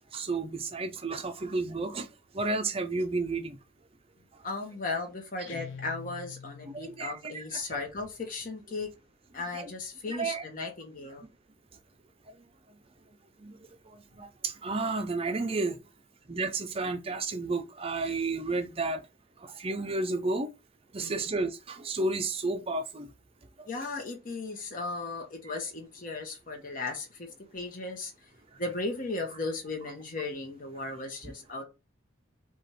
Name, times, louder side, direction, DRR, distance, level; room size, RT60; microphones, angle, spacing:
voice 1, 0.1-2.0 2.3-3.6 6.7-7.8 9.5-9.7 10.1-10.4 13.4-13.5 14.2-15.8 16.3-19.0 19.6-20.5 20.9-23.1, right 3 dB, 30° right, 0.5 m, -31 dB
voice 2, 4.4-8.9 9.3-11.3 21.0-21.4 23.7-27.3 27.5-28.1 28.6-31.6, left 3 dB, 40° left, 1.1 m, -36 dB
Guitar, 5.5-7.2, left 5 dB, 60° left, 0.7 m, -44 dB
4.9 x 2.5 x 4.3 m
head